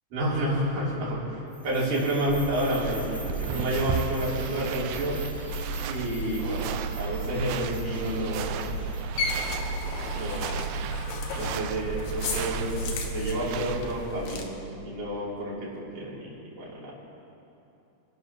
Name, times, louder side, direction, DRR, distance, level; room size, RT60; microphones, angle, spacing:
voice 1, 0.1-5.2 5.9-6.7 7.0-8.8 10.1-10.8 11.3-14.5 14.8-16.9, equal, 65° right, -7 dB, 4.5 m, -30 dB
sound 1, 1.5-10.6, right 1 dB, 25° left, 4.0 m, -47 dB
sound 2, 2.3-14.4, right 1 dB, 65° left, 2.1 m, -33 dB
sound 3, 2.6-14.1, right 9 dB, 85° right, 2.3 m, -37 dB
27.0 x 11.5 x 2.9 m, 2.8 s
omnidirectional pair, 4.0 m